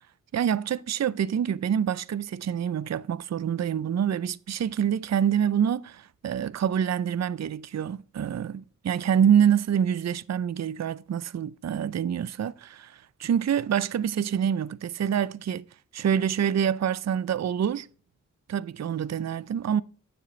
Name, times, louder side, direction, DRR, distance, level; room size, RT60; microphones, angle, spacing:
voice 1, 0.3-15.6 15.9-17.9 18.5-19.8, right 8 dB, 55° right, 0.5 m, -26 dB
9.2 x 7.7 x 3.1 m
wide cardioid pair, 60°, 32 cm